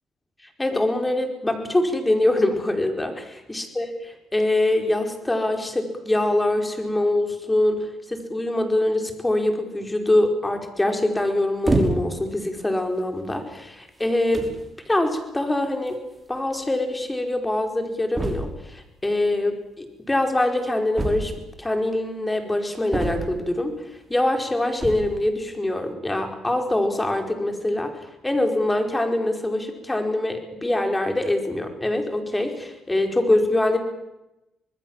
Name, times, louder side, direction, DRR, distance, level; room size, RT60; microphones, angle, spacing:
voice 1, 0.6-14.5 14.9-16.0 16.3-21.3 21.6-23.7 24.1-27.9 28.2-33.8, left 1 dB, 15° left, 5 dB, 4.9 m, -24 dB
sound 1, 11.6-12.3 13.0-13.2 14.0-14.1 14.3-14.6 15.9-16.0 16.2-16.3 16.5-16.6 18.1-18.7 20.9-21.6 22.9-23.5 24.7-25.2, right 2 dB, 20° right, 5.7 m, -26 dB
26.0 x 20.5 x 7.5 m, 0.94 s
cardioid pair, 90°, 0 cm